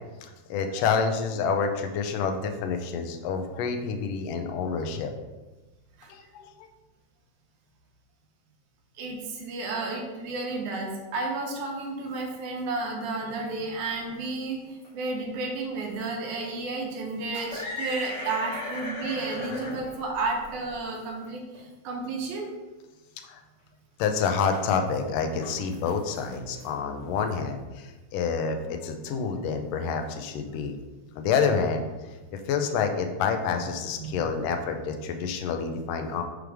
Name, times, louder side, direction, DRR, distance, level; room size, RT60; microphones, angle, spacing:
voice 1, 0.2-5.1 6.1-6.5 23.2-23.4 24.0-30.7 31.2-31.8 32.3-36.2, left 5 dB, 80° left, 5 dB, 1.5 m, -28 dB
voice 2, 9.0-14.6 14.9-22.5 34.0-34.2, right 3 dB, 85° right, 0 dB, 2.5 m, -32 dB
sound 1, 11.8-12.2 12.7-12.9 13.5-13.6 14.0-14.1 14.6-15.0 15.9-16.0 16.6-16.7 17.0-21.3 21.5-21.6 22.4-22.5 24.5-25.0 25.2-27.3, left 1 dB, 45° left, 1.0 m, -38 dB
6.1 x 3.4 x 4.8 m, 1.1 s
omnidirectional pair, 3.4 m